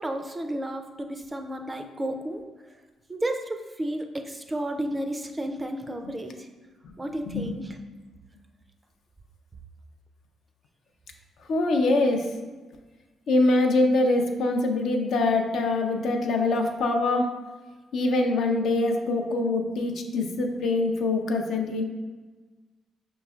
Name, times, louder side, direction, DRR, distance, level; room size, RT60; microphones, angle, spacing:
voice 1, 0.0-2.4 3.1-6.5 7.0-7.8, right 1 dB, 20° right, 5 dB, 0.4 m, -32 dB
voice 2, 11.5-12.3 13.3-17.3 17.9-21.8, left 2 dB, 70° left, 3 dB, 0.5 m, -24 dB
5.0 x 3.0 x 2.4 m, 1.3 s
cardioid pair, 90°, 0 cm